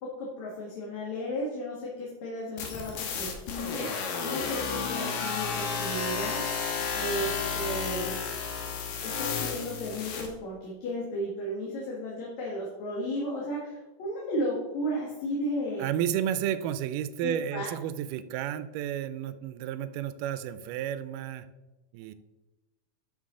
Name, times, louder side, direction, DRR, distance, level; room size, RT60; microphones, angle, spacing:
voice 1, 0.0-8.2 9.0-15.9 17.2-17.7, equal, 60° left, -4 dB, 2.7 m, -34 dB
sound 1, 2.6-10.3, left 5 dB, 80° left, 2.8 m, -32 dB
voice 2, 15.8-21.5 21.9-22.1, right 10 dB, 85° right, 13 dB, 2.1 m, -32 dB
11.5 x 6.5 x 3.7 m, 1.1 s
omnidirectional pair, 3.8 m